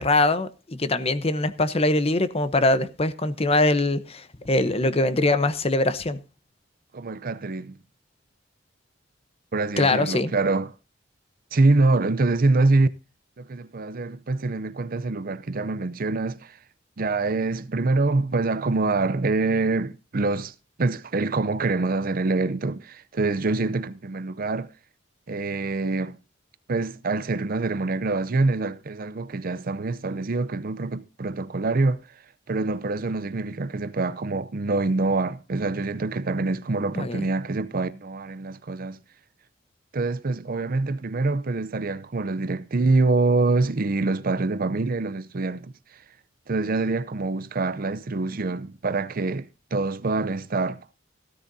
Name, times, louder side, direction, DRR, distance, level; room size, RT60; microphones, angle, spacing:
voice 1, 0.0-6.2 9.8-10.3 36.9-37.2, left 2 dB, 30° left, 0.9 m, -22 dB
voice 2, 6.9-7.8 9.5-10.7 11.5-12.9 13.4-16.6 17.0-24.7 25.3-26.2 26.7-32.1 32.5-39.0 39.9-45.7 46.5-50.9, right 3 dB, 50° right, 0.6 m, -25 dB
15.5 x 13.5 x 2.7 m
head